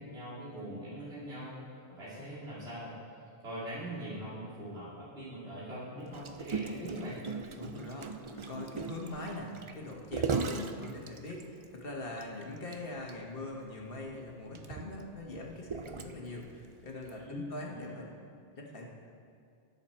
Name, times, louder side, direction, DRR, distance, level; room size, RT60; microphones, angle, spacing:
voice 1, 0.0-1.5 1.9-2.9 3.4-7.2 17.1-17.8, equal, 75° right, -10 dB, 3.1 m, -42 dB
Gurgling, 6.1-11.6 12.2-12.3 12.6-12.8 13.1-13.2 13.9-16.4 17.1-17.2, right 5 dB, 40° right, 0.5 m, -37 dB
voice 2, 7.6-18.1 18.6-18.9, left 2 dB, 60° left, 0 dB, 1.7 m, -42 dB
20.0 x 7.1 x 4.4 m, 2.3 s
omnidirectional pair, 1.1 m